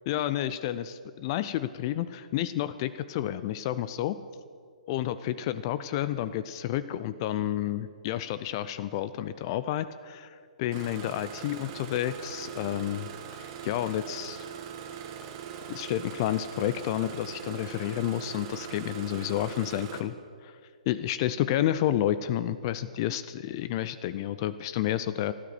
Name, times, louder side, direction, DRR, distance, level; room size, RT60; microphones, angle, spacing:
voice 1, 0.1-4.2 4.9-13.1 13.4-14.5 15.7-20.1 20.4-20.6 20.9-25.3, left 12 dB, 35° left, 14 dB, 0.4 m, -30 dB
Engine starting, 10.7-20.0, right 8 dB, 35° right, 1.5 m, -41 dB
13.0 x 12.0 x 6.8 m, 2.2 s
figure-of-eight pair, 125°, 4 cm